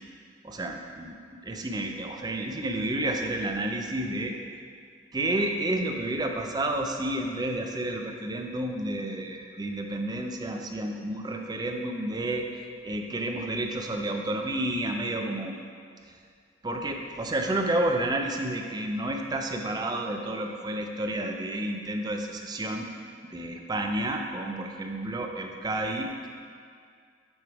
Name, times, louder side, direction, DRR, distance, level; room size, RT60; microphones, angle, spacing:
voice 1, 0.4-4.3 5.1-12.5 12.8-15.6 16.6-22.9 23.3-26.3, right 1 dB, 20° right, 3 dB, 0.4 m, -30 dB
7.8 x 3.4 x 4.7 m, 2.2 s
head